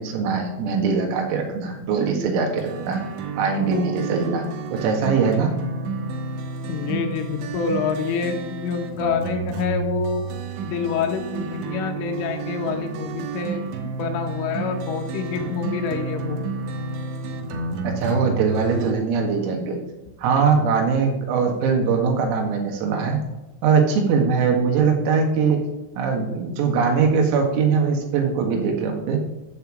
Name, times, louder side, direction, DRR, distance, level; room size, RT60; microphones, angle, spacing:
voice 1, 0.0-3.0 3.4-4.4 4.7-5.5 17.8-19.8 20.2-23.2 23.6-25.6 26.0-29.2, right 5 dB, 85° right, 2 dB, 4.6 m, -21 dB
sound 1, 2.6-18.9, right 4 dB, 70° right, 3.4 m, -31 dB
voice 2, 6.7-10.3 10.6-13.6 14.0-16.4, left 6 dB, 75° left, 4 dB, 4.0 m, -27 dB
13.5 x 7.0 x 7.5 m, 1.0 s
omnidirectional pair, 6.0 m